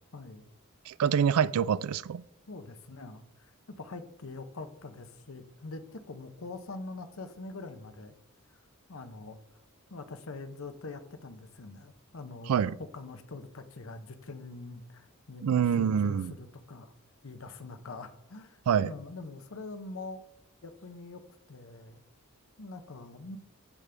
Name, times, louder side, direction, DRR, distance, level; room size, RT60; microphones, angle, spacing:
voice 1, 0.1-0.5 2.5-3.5 3.8-8.1 8.9-9.4 9.9-12.5 12.8-16.9 17.2-20.2 20.6-21.2 21.5-22.0 22.6-23.4, left 3 dB, 65° left, 0.8 m, -44 dB
voice 2, 0.9-2.2 12.5-12.8 15.4-16.3 18.7-18.9, right 8 dB, 80° right, 0.3 m, -26 dB
14.5 x 5.2 x 3.4 m
head